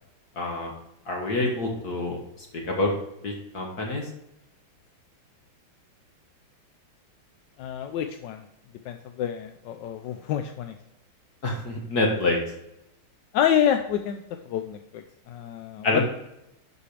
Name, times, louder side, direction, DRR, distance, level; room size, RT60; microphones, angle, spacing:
voice 1, 0.4-0.7 1.1-2.2 2.7-2.9 3.2-4.1 11.4-12.4 15.8-16.0, left 2 dB, 50° left, 0 dB, 1.8 m, -26 dB
voice 2, 7.6-8.5 8.8-10.7 13.3-16.0, left 9 dB, 75° left, 6 dB, 1.1 m, -28 dB
11.5 x 5.1 x 3.2 m, 0.85 s
omnidirectional pair, 2.3 m